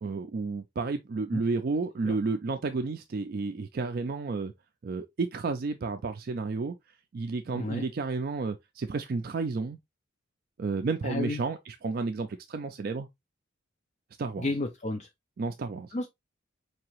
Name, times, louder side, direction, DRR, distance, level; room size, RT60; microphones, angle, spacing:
voice 1, 0.0-4.5 4.8-6.7 7.1-9.8 10.6-13.1 14.2-14.5 15.4-15.9, right 4 dB, 50° right, 0.4 m, -31 dB
voice 2, 7.5-7.8 11.0-11.4 14.4-15.1 15.9-16.1, left 2 dB, 35° left, 0.5 m, -32 dB
4.6 x 2.8 x 2.9 m
head